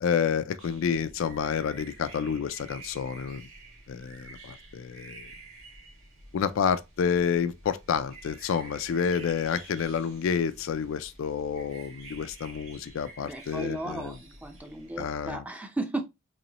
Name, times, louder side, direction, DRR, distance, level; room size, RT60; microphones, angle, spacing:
voice 1, 0.0-3.5 3.9-5.3 6.3-14.1 15.0-15.4, left 7 dB, 65° left, 0.3 m, -29 dB
sound 1, 0.6-15.3, right 3 dB, 90° right, 1.7 m, -49 dB
voice 2, 13.2-16.0, right 2 dB, 5° right, 0.5 m, -35 dB
4.1 x 3.0 x 2.8 m
head